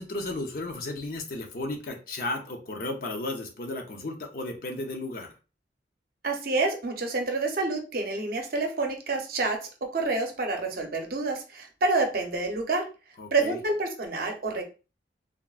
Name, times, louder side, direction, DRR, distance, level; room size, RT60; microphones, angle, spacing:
voice 1, 0.0-5.3 13.2-13.6, left 2 dB, 55° left, 3 dB, 0.5 m, -34 dB
voice 2, 6.2-9.6 9.9-12.8 13.3-14.6, right 3 dB, 55° right, 3 dB, 0.6 m, -28 dB
3.4 x 2.0 x 2.3 m, 0.32 s
head